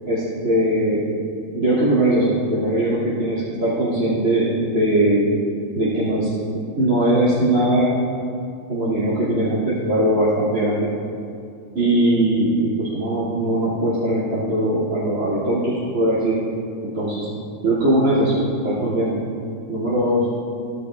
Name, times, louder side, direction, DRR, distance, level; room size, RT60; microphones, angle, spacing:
voice 1, 0.1-1.0 1.5-5.3 5.7-6.3 6.8-7.9 8.7-10.9 11.7-16.4 16.8-17.3 17.6-19.1 19.7-20.3, right 1 dB, 70° right, -11 dB, 3.3 m, -20 dB
16.5 x 14.0 x 2.5 m, 2.4 s
omnidirectional pair, 1.4 m